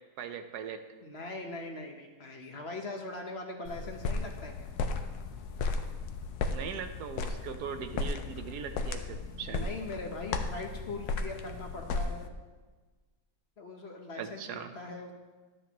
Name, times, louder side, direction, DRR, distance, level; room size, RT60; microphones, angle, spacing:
voice 1, 0.2-0.8 6.5-9.7 14.2-14.7, right 7 dB, 80° right, 8 dB, 1.2 m, -40 dB
voice 2, 1.0-4.7 9.4-12.3 13.6-15.1, left 2 dB, 45° left, 2 dB, 1.1 m, -41 dB
sound 1, 3.6-12.3, left 3 dB, 75° left, 1.2 m, -35 dB
12.5 x 8.5 x 3.0 m, 1.3 s
omnidirectional pair, 1.7 m